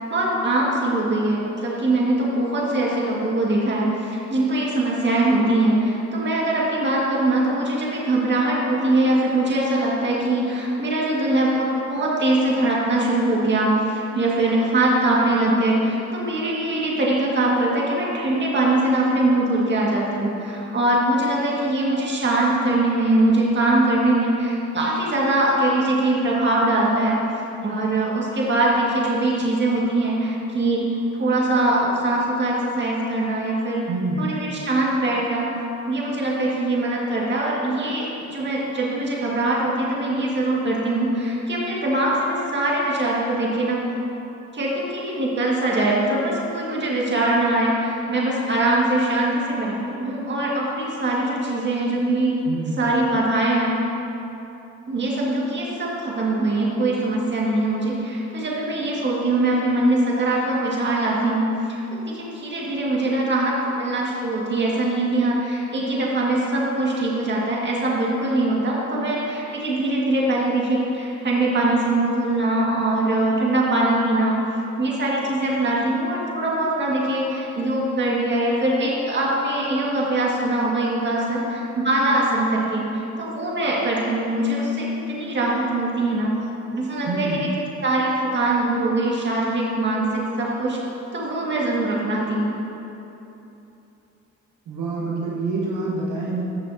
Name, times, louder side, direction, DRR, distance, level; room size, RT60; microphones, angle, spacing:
voice 1, 0.1-27.2 27.6-33.9 34.2-35.5 35.9-43.8 44.5-52.3 52.8-53.8 54.9-61.8 62.1-74.4 74.8-86.3 86.7-87.5 87.8-90.8 91.1-92.6, right 2 dB, 35° right, -4 dB, 1.9 m, -22 dB
voice 2, 33.9-34.3 52.4-53.0 87.0-87.5 94.7-96.4, right 3 dB, 75° right, -5 dB, 1.5 m, -27 dB
14.0 x 6.1 x 2.8 m, 3.0 s
cardioid pair, 90°, 30 cm